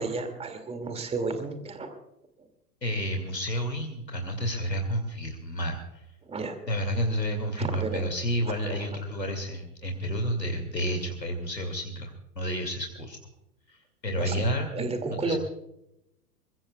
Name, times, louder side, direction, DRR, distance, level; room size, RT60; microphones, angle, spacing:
voice 1, 0.0-1.9 6.3-6.6 7.6-8.0 8.7-8.8 14.2-14.4 14.7-15.4, right 3 dB, 10° right, 7 dB, 2.4 m, -32 dB
voice 2, 2.8-6.0 6.7-12.1 12.4-13.2 13.7-15.4, equal, 90° left, 3 dB, 2.5 m, -30 dB
22.5 x 22.0 x 2.3 m, 0.85 s
figure-of-eight pair, 100°, 49 cm